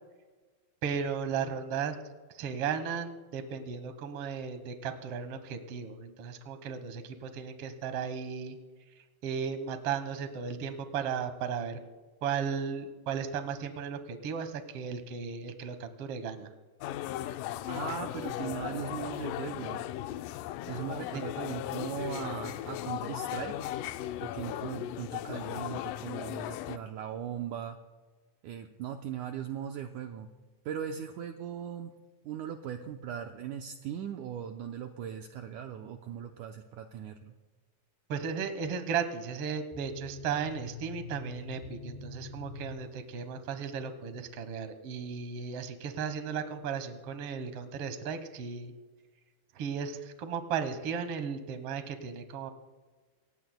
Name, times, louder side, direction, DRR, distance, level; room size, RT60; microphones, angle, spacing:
voice 1, 0.8-2.0 2.3-8.6 9.2-11.8 12.2-16.5 21.1-21.2 38.1-48.7 49.5-52.5, right 6 dB, 60° right, 9 dB, 1.7 m, -35 dB
sound 1, 16.8-26.8, left 13 dB, 80° left, 2.0 m, -37 dB
voice 2, 17.7-19.8 20.7-23.7 24.2-27.8 28.4-30.3 30.7-31.9 32.2-37.3, right 9 dB, 80° right, 4 dB, 1.9 m, -39 dB
sound 2, 39.7-42.7, left 3 dB, 10° right, 3.4 m, -44 dB
28.0 x 17.0 x 2.2 m, 1.3 s
omnidirectional pair, 4.1 m